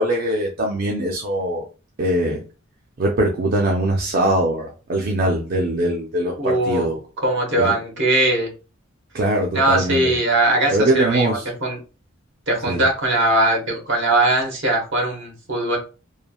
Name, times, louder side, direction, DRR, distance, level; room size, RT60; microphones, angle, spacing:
voice 1, 0.0-1.7 2.0-2.4 3.0-7.0 7.6-7.7 9.1-10.2 10.7-11.5 12.7-12.8, right 1 dB, 45° right, -1 dB, 0.5 m, -22 dB
voice 2, 6.4-6.9 7.2-8.5 9.5-11.8 12.5-15.8, right 2 dB, 60° right, 1 dB, 1.0 m, -20 dB
3.2 x 2.3 x 2.3 m, 0.34 s
head